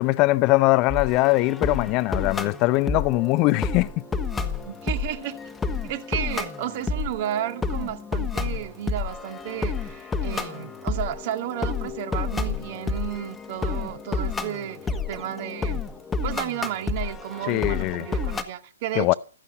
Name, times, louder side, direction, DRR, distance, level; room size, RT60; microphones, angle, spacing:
voice 1, 0.0-3.9 17.5-18.1 18.9-19.1, left 21 dB, 30° left, 0.7 m, -21 dB
sound 1, 0.9-18.4, left 4 dB, 10° left, 1.6 m, -30 dB
voice 2, 4.7-5.4 5.8-15.8 16.2-19.2, right 11 dB, 40° right, 2.1 m, -32 dB
15.5 x 14.0 x 5.3 m
figure-of-eight pair, 120°, 0 cm